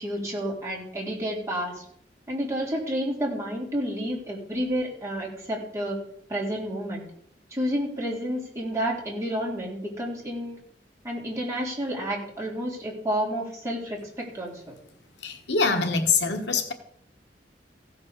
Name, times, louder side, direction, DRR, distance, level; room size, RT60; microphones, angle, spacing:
voice 1, 0.0-1.8 2.3-6.0 6.3-7.0 7.5-10.6 11.0-14.7, equal, 15° right, -3 dB, 3.7 m, -30 dB
voice 2, 15.2-16.7, left 4 dB, 80° left, 6 dB, 1.3 m, -24 dB
16.0 x 5.3 x 6.6 m, 0.69 s
head